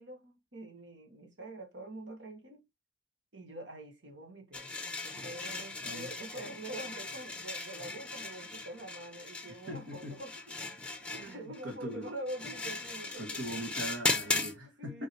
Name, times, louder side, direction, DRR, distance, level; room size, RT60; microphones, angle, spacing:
voice 1, 0.0-2.6 3.3-10.4 10.8-13.4 14.8-15.1, right 1 dB, 70° right, 1.9 m, -45 dB
sound 1, 4.5-14.5, left 3 dB, 5° left, 1.1 m, -38 dB
voice 2, 9.7-10.2 11.2-12.1 13.2-15.1, right 1 dB, 85° right, 1.7 m, -41 dB
6.2 x 4.5 x 4.6 m
head